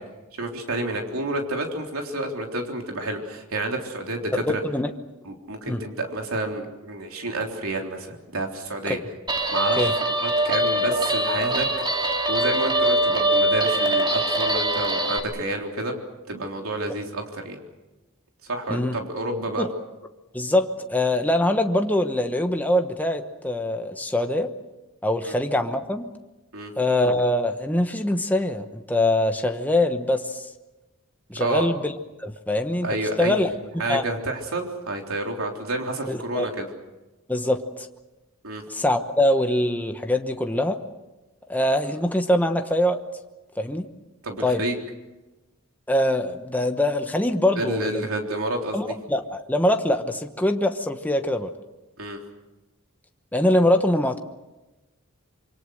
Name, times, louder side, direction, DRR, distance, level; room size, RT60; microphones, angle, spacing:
voice 1, 0.3-4.6 5.3-9.0 9.5-9.9 10.2-16.0 16.3-17.6 18.4-19.6 25.3-25.4 26.5-26.7 31.4-31.7 32.8-33.5 33.8-36.7 38.4-38.6 44.2-44.8 47.6-48.9 52.0-52.2, right 2 dB, 70° right, 2 dB, 3.6 m, -29 dB
Guitar, 9.3-15.2, right 1 dB, 20° right, 2.5 m, -23 dB
voice 2, 20.3-24.5 25.0-26.1 26.8-30.5 31.3-31.9 32.2-32.9 33.2-33.5 33.9-34.0 36.1-36.5 37.3-37.9 38.7-40.8 41.5-43.0 43.6-43.9 44.4-44.6 45.9-48.1 48.7-51.5 53.3-54.2, left 1 dB, 10° left, 5 dB, 1.1 m, -23 dB
26.5 x 24.5 x 6.5 m, 1.1 s
head